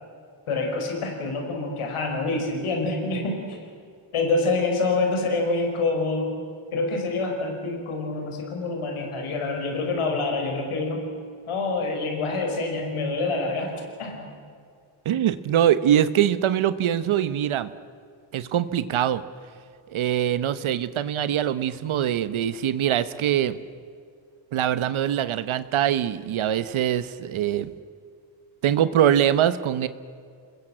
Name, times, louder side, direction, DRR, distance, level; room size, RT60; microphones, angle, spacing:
voice 1, 0.5-3.6 4.1-6.4 6.7-11.1 11.5-14.3, left 3 dB, 85° left, 3 dB, 5.4 m, -26 dB
voice 2, 15.0-17.7 18.3-19.2 19.9-23.6 24.5-27.7 28.6-29.9, right 10 dB, 75° right, 13 dB, 1.0 m, -23 dB
28.0 x 21.0 x 7.8 m, 2.2 s
wide cardioid pair, 125°, 49 cm